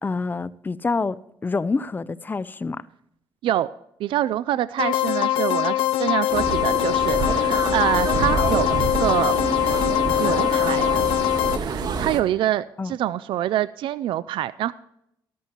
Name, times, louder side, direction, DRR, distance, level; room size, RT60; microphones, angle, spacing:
voice 1, 0.0-2.8 12.8-12.9, left 4 dB, 20° left, 0.5 m, -27 dB
voice 2, 4.0-9.3 10.1-10.9 11.6-14.7, right 12 dB, 75° right, 0.4 m, -25 dB
sound 1, 4.8-11.6, left 13 dB, 85° left, 0.4 m, -22 dB
sound 2, 6.3-12.2, right 5 dB, 50° right, 1.5 m, -27 dB
13.5 x 13.0 x 2.9 m
cardioid pair, 95°, 9 cm